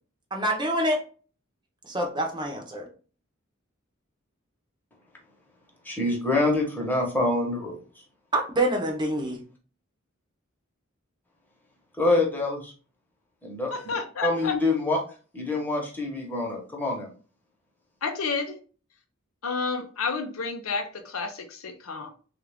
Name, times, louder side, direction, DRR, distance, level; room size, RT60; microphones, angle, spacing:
voice 1, 0.3-1.0 1.8-2.9 8.3-9.4, right 1 dB, 20° right, 0.6 m, -26 dB
voice 2, 5.8-7.8 12.0-12.7 13.4-13.9 14.2-15.0 15.3-17.1, left 2 dB, 10° left, 1.0 m, -26 dB
voice 3, 13.7-14.6 18.0-18.6 19.4-22.1, left 4 dB, 85° left, 0.6 m, -30 dB
3.5 x 2.4 x 3.4 m
head